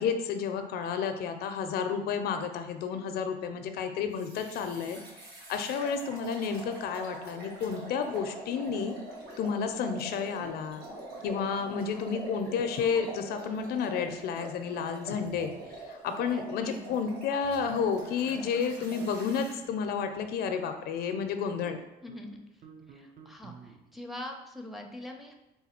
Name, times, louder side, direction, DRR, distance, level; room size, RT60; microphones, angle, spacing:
voice 1, 0.0-5.0 5.5-8.9 9.4-10.8 11.2-15.5 15.9-21.8, left 6 dB, 70° left, 7 dB, 0.4 m, -31 dB
sound 1, 4.2-19.6, right 2 dB, 70° right, 1.3 m, -44 dB
sound 2, 15.3-16.3 16.6-17.0 17.4-18.0 18.3-18.5 18.8-19.2 19.6-24.0, right 5 dB, 55° right, 0.6 m, -52 dB
voice 2, 16.2-16.8 22.0-22.4 22.9-25.3, left 1 dB, ahead, 2 dB, 0.5 m, -43 dB
4.0 x 2.2 x 4.3 m, 0.93 s
cardioid pair, 110°, 17 cm